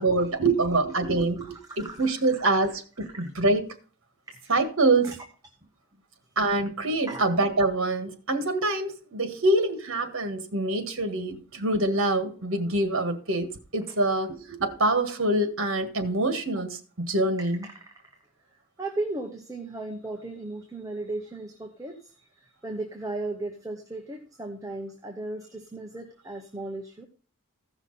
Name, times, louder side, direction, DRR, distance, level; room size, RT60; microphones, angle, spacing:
voice 1, 0.0-1.5 1.8-2.7 3.2-3.6 4.5-5.1 6.4-17.7, right 2 dB, 60° right, 1.7 m, -25 dB
voice 2, 1.2-2.7 3.0-3.2 4.3-4.6 5.0-5.2 6.9-7.3 13.9-14.0 17.4-17.9 18.8-27.1, right 2 dB, 15° right, 0.9 m, -37 dB
15.5 x 6.0 x 4.2 m
head